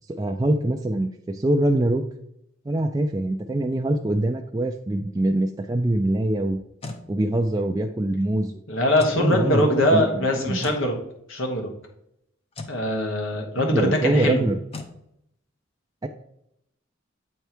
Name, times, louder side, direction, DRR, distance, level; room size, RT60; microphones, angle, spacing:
voice 1, 0.1-2.0 2.7-6.6 7.1-8.6 9.1-10.6 13.6-14.6 16.0-16.1, right 1 dB, 20° right, 3 dB, 0.3 m, -24 dB
sound 1, 6.5-7.1 8.9-9.2 10.6-10.9 12.5-12.8 14.7-15.0, left 2 dB, 30° left, 0.7 m, -36 dB
voice 2, 8.7-10.9 11.3-11.7 12.7-14.5, left 1 dB, 80° left, 2 dB, 1.5 m, -22 dB
8.2 x 3.4 x 4.5 m, 0.77 s
head